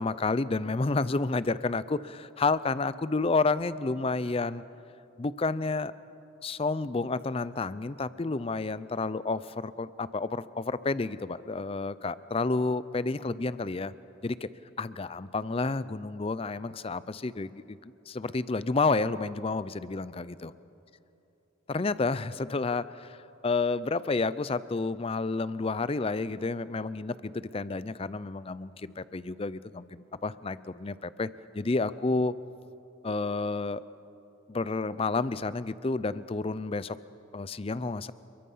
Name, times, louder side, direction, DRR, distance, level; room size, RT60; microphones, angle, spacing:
voice 1, 0.0-4.6 5.2-5.9 6.4-13.9 14.2-14.5 14.8-20.5 21.7-23.2 23.4-31.3 31.5-32.3 33.0-33.8 34.5-37.0 37.3-38.1, left 3 dB, 30° left, 16 dB, 0.5 m, -30 dB
29.0 x 22.5 x 5.6 m, 2.9 s
head